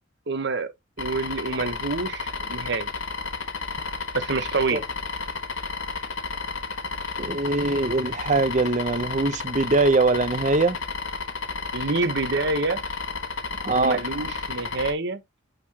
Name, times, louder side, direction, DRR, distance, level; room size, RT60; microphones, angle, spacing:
voice 1, 0.3-0.7 1.0-2.9 4.1-4.8 11.7-12.8 13.7-15.2, right 3 dB, 55° right, 1.0 m, -27 dB
sound 1, 1.0-14.9, left 4 dB, 75° left, 1.3 m, -32 dB
voice 2, 7.2-10.8 13.6-14.0, right 3 dB, 35° right, 0.7 m, -22 dB
9.0 x 3.9 x 2.8 m
head